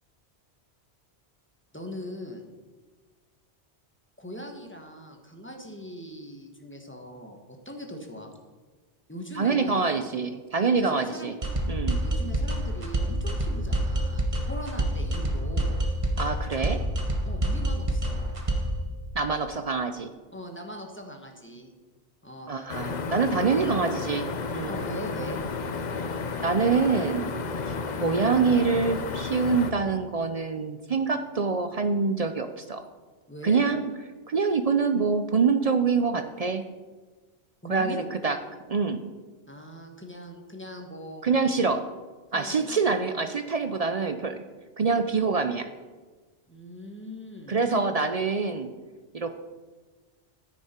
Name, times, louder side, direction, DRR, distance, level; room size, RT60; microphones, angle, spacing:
voice 1, 1.7-2.4 4.2-8.3 9.1-9.9 10.7-11.4 11.9-15.8 17.2-18.3 20.3-21.7 22.2-22.6 23.5-23.7 24.7-25.4 33.3-33.6 37.6-38.1 39.5-41.2 42.3-42.8 46.5-47.8, equal, 10° left, 2 dB, 1.2 m, -40 dB
voice 2, 9.4-11.3 11.7-12.0 16.2-16.8 19.1-20.1 22.5-24.8 26.4-27.4 28.0-32.8 33.4-33.9 34.3-36.6 37.7-38.4 38.7-39.0 41.2-41.9 42.3-44.4 44.8-45.7 47.5-48.7 49.1-49.3, right 5 dB, 50° right, 8 dB, 0.5 m, -25 dB
sound 1, 11.4-18.8, right 1 dB, 30° right, 1.1 m, -27 dB
sound 2, 22.7-29.7, left 4 dB, 45° left, 0.7 m, -32 dB
10.0 x 9.4 x 4.4 m, 1.3 s
omnidirectional pair, 1.2 m